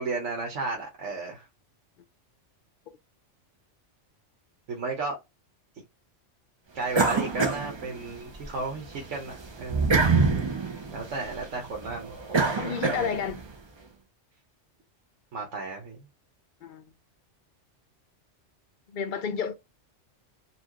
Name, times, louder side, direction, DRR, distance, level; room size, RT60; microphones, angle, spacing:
voice 1, 0.0-1.5 4.7-5.2 6.7-9.9 10.9-13.2 15.3-16.0, right 3 dB, 85° right, 1.3 m, -34 dB
sound 1, 6.9-8.5 8.9-13.5, right 4 dB, 30° right, 0.5 m, -26 dB
voice 2, 12.6-13.5 16.6-16.9 18.9-19.5, left 7 dB, 50° left, 0.6 m, -31 dB
4.3 x 2.4 x 2.9 m
omnidirectional pair, 1.2 m